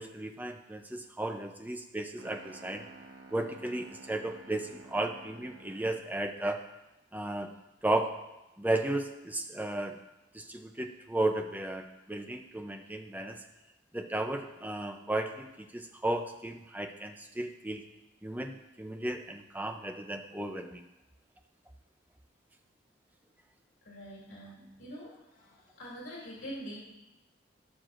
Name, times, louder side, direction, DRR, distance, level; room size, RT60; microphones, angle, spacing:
voice 1, 0.0-2.9 3.3-6.6 7.1-7.5 7.8-8.1 8.6-10.0 10.3-13.4 13.9-17.8 18.2-20.8, right 1 dB, 10° right, 5 dB, 0.5 m, -34 dB
sound 1, 2.2-6.1, right 3 dB, 75° right, 1.0 m, -51 dB
voice 2, 23.8-26.8, equal, 90° left, -5 dB, 2.7 m, -45 dB
16.5 x 6.1 x 2.5 m, 0.98 s
head